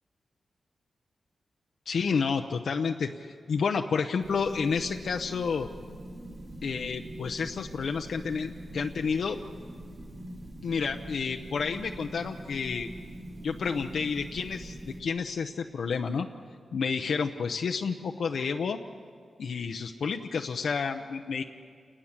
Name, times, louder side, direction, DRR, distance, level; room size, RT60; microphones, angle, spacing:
voice 1, 1.9-5.7 6.6-9.4 10.6-12.9 13.4-16.3 16.7-18.8 19.4-21.4, left 5 dB, 75° left, 4 dB, 0.8 m, -30 dB
sound 1, 4.2-15.0, right 1 dB, 40° right, 4.9 m, -43 dB
29.0 x 20.0 x 7.4 m, 2.2 s
wide cardioid pair, 95°, 0 cm